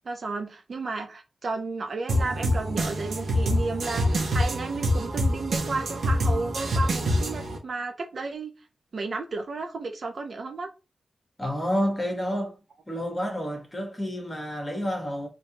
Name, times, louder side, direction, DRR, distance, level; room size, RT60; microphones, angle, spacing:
voice 1, 0.0-8.5 8.9-10.7, right 3 dB, 50° right, 0.7 m, -33 dB
sound 1, 2.1-7.6, equal, 85° right, 1.2 m, -26 dB
voice 2, 11.4-12.5 12.9-15.3, equal, 15° left, 1.3 m, -29 dB
5.3 x 3.0 x 2.9 m
wide cardioid pair, 140°, 0 cm